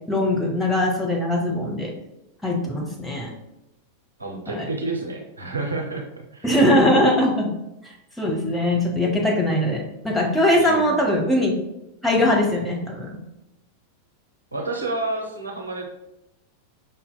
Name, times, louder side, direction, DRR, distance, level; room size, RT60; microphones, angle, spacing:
voice 1, 0.1-1.9 2.4-3.3 4.5-4.6 6.4-7.5 7.8-11.6 12.0-13.2, left 1 dB, 5° left, -2 dB, 0.8 m, -21 dB
voice 2, 4.2-6.0 6.3-6.5 10.5-10.9 14.5-15.8, right 2 dB, 80° right, 0 dB, 0.6 m, -29 dB
5.3 x 2.8 x 2.2 m, 0.88 s
figure-of-eight pair, 90°, 0 cm